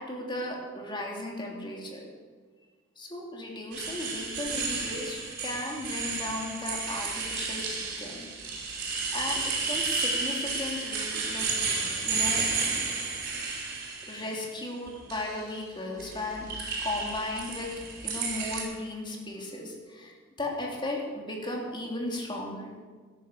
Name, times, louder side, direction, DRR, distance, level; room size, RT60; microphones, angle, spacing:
voice 1, 0.0-2.0 3.0-8.3 9.1-11.5 12.0-12.4 14.1-16.5 16.8-17.7 18.0-22.7, left 1 dB, 25° left, -1 dB, 3.1 m, -36 dB
sound 1, 3.7-14.3 14.9-15.4 16.0-18.6, right 4 dB, 50° right, 5.4 m, -32 dB
15.0 x 11.5 x 6.9 m, 1.5 s
head